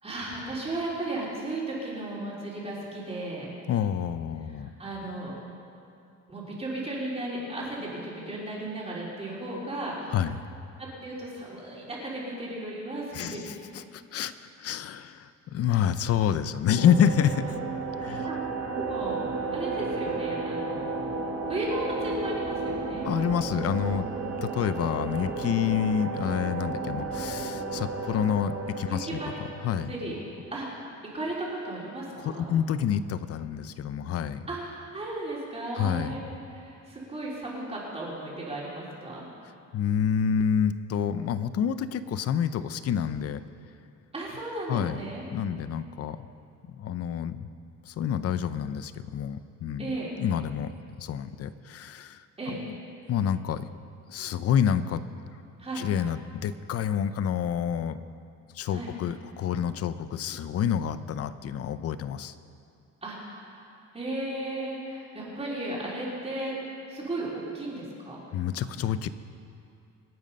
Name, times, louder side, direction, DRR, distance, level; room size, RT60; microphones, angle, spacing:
voice 1, 0.0-3.5 4.5-5.3 6.3-10.2 10.8-13.4 18.1-18.4 18.7-21.1 21.5-23.1 28.9-29.3 29.9-30.2 30.5-30.7 31.1-32.5 34.5-36.2 36.5-39.3 44.1-45.2 49.8-50.1 52.4-52.6 55.6-55.9 58.7-58.9 63.0-66.5 66.9-67.3 67.5-68.2, right 2 dB, 20° right, -5 dB, 3.7 m, -35 dB
voice 2, 3.7-4.7 10.1-10.4 13.1-14.3 14.6-17.5 18.0-18.3 23.0-24.1 24.4-29.2 29.6-29.9 32.2-34.4 35.8-36.2 39.7-43.4 44.7-45.0 45.3-46.3 46.8-47.5 47.9-50.7 51.0-52.2 52.5-52.8 53.1-53.7 54.1-55.1 55.7-58.0 58.5-62.3 68.3-69.1, left 8 dB, 50° left, 13 dB, 0.6 m, -28 dB
sound 1, 16.8-30.3, right 3 dB, 45° right, 2.0 m, -33 dB
26.0 x 9.3 x 5.4 m, 2.5 s
cardioid pair, 170°, 30 cm